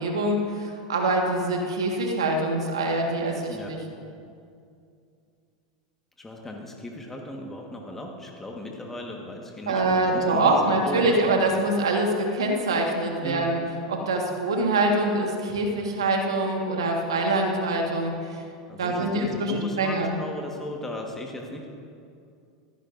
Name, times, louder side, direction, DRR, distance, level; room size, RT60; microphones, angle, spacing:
voice 1, 0.0-3.8 9.7-13.6 13.9-18.2 18.8-20.1, right 2 dB, 85° right, 1 dB, 1.6 m, -24 dB
voice 2, 6.2-11.2 13.2-13.5 18.7-21.7, left 1 dB, 15° left, 1 dB, 1.6 m, -37 dB
15.0 x 14.5 x 2.7 m, 2.4 s
hypercardioid pair, 90°, 3 cm